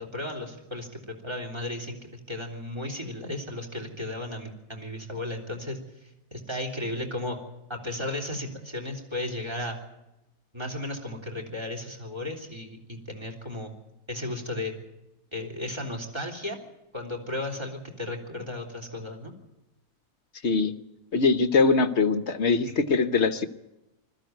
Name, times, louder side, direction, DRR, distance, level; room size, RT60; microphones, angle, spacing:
voice 1, 0.0-7.4 7.7-9.8 10.5-13.7 14.1-14.7 15.3-16.6 16.9-19.3 22.6-22.8, left 1 dB, 15° right, 3 dB, 3.5 m, -35 dB
voice 2, 21.1-23.5, left 4 dB, 50° left, 10 dB, 1.2 m, -22 dB
21.0 x 14.0 x 9.3 m, 0.94 s
omnidirectional pair, 1.7 m